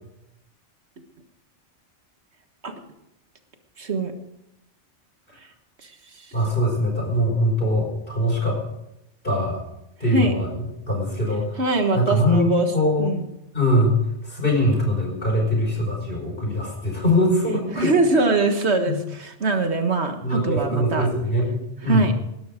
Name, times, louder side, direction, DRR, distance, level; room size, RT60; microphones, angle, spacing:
voice 1, 3.8-4.1 5.8-6.3 10.1-10.3 11.6-12.7 13.0-13.3 17.7-21.1 21.9-22.1, right 2 dB, 65° right, 6 dB, 1.8 m, -22 dB
voice 2, 6.3-8.6 9.2-9.6 10.0-11.6 11.9-13.1 13.5-14.0 14.2-17.9 18.8-19.0 20.2-21.6 21.8-22.1, equal, 50° left, 0 dB, 5.1 m, -22 dB
18.0 x 12.0 x 5.0 m, 0.86 s
omnidirectional pair, 1.2 m